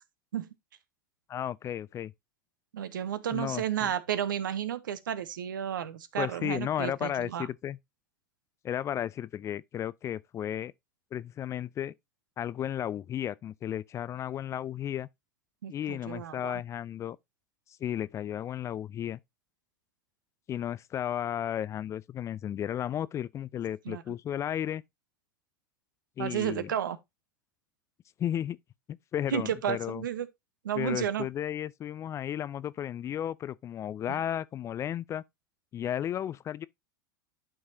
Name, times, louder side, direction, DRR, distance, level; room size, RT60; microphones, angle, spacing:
voice 1, 1.3-2.1 3.3-3.9 6.2-7.8 8.6-10.7 11.1-11.9 12.4-15.1 15.7-17.2 17.8-19.2 20.5-24.8 26.2-26.7 28.2-28.6 28.9-30.0 30.8-35.2 35.7-36.7, left 10 dB, 25° left, 0.4 m, -34 dB
voice 2, 2.7-7.5 15.6-16.6 23.8-24.0 26.2-27.0 29.3-30.3 30.6-31.3 34.1-34.2, right 10 dB, 75° right, 0.9 m, -32 dB
11.5 x 4.7 x 2.7 m
hypercardioid pair, 90°, 11 cm